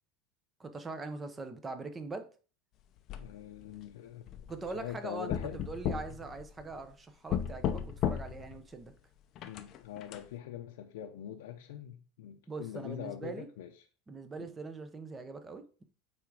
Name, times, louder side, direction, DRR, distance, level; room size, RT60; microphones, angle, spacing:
voice 1, 0.6-2.3 4.5-8.9 12.5-13.5 14.1-15.8, right 3 dB, 15° right, 0.7 m, -42 dB
sound 1, 3.1-3.7 4.3-4.9 5.3-6.9 7.3-8.6 9.3-10.2, left 9 dB, 35° left, 0.6 m, -35 dB
voice 2, 3.2-4.3 4.7-5.6 9.4-13.7 14.4-14.5, left 11 dB, 85° left, 0.7 m, -43 dB
8.5 x 3.6 x 4.8 m
supercardioid pair, 170°, 0 cm